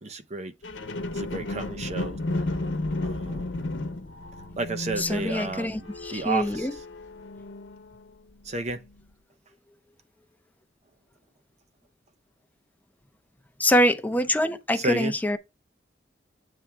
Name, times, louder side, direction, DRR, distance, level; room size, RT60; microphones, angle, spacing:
voice 1, 0.0-0.5 1.1-2.2 3.0-3.5 4.6-6.7 8.4-8.8 14.8-15.1, right 3 dB, 35° right, 0.7 m, -31 dB
sound 1, 0.6-8.1 8.6-8.7, left 2 dB, 85° left, 0.9 m, -33 dB
voice 2, 5.0-6.7 13.6-15.4, equal, 10° left, 0.6 m, -25 dB
7.4 x 3.5 x 4.5 m
head